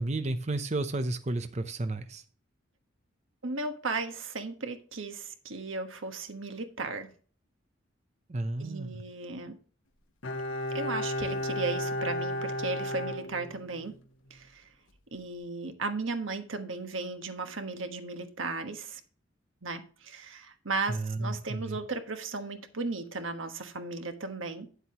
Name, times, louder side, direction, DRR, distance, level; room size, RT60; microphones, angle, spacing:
voice 1, 0.0-2.2 8.3-9.0 20.9-21.8, right 2 dB, 35° right, 0.7 m, -32 dB
voice 2, 3.4-7.1 8.6-9.5 10.7-13.9 14.3-14.6 15.1-19.0 19.6-24.7, right 3 dB, 85° right, 1.4 m, -35 dB
Bowed string instrument, 10.2-14.0 14.3-14.4, left 1 dB, 85° left, 1.1 m, -33 dB
9.8 x 8.1 x 2.9 m
head